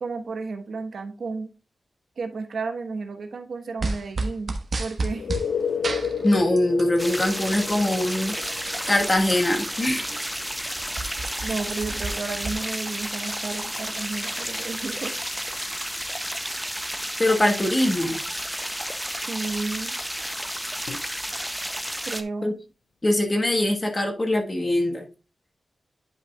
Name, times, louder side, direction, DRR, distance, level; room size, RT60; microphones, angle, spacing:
voice 1, 0.0-1.5 2.2-5.3 11.4-15.1 19.1-19.9 22.0-22.6, right 4 dB, 70° right, 1.1 m, -32 dB
sound 1, 3.8-5.5 5.8-7.0 7.3-9.3 9.8-9.9 10.1-12.5, right 3 dB, 50° right, 1.2 m, -31 dB
sound 2, 5.1-16.6 20.9-21.0, left 6 dB, 85° left, 0.5 m, -35 dB
voice 2, 6.2-8.6 8.9-10.1 17.2-18.2 22.4-22.5 23.0-25.0, left 1 dB, 25° left, 1.4 m, -22 dB
sound 3, 7.0-22.2, equal, 5° right, 0.5 m, -32 dB
10.0 x 5.7 x 2.3 m
wide cardioid pair, 150°, 0 cm